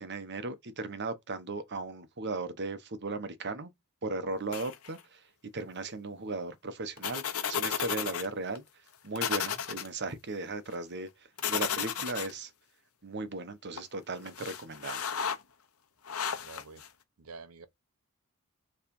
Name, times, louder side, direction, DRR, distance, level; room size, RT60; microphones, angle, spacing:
voice 1, 0.0-3.7 4.0-5.2 5.5-8.6 9.0-11.1 11.5-12.5 13.0-15.0, right 3 dB, 50° right, 1.1 m, -37 dB
sound 1, 4.5-5.0 7.0-8.3 8.6-8.7 9.2-9.9 11.4-12.3 13.8-13.9 14.3-15.4 16.1-16.9, left 8 dB, 70° left, 0.9 m, -33 dB
voice 2, 16.4-16.9 17.2-17.7, right 4 dB, 80° right, 0.9 m, -48 dB
7.3 x 3.3 x 5.3 m
head